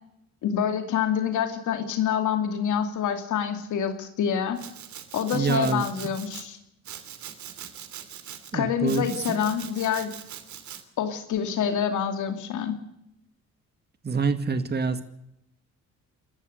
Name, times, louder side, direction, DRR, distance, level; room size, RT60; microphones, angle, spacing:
voice 1, 0.4-4.6 5.1-6.6 8.5-10.1 11.0-12.8, left 8 dB, 75° left, 7 dB, 2.5 m, -26 dB
Domestic sounds home sounds, 4.6-6.4 6.8-8.5 8.9-10.8, right 9 dB, 70° right, 2.9 m, -42 dB
voice 2, 5.3-5.8 8.5-9.4 14.0-15.0, right 5 dB, 35° right, 9 dB, 2.1 m, -26 dB
29.5 x 14.0 x 6.7 m, 0.80 s
cardioid pair, 90°, 30 cm